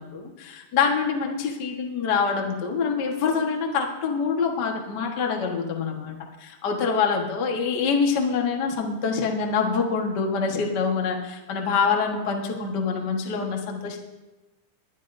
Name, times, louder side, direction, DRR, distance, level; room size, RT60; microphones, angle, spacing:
voice 1, 0.0-14.0, left 5 dB, 85° left, 1 dB, 0.9 m, -25 dB
21.5 x 11.5 x 2.6 m, 1.1 s
omnidirectional pair, 4.3 m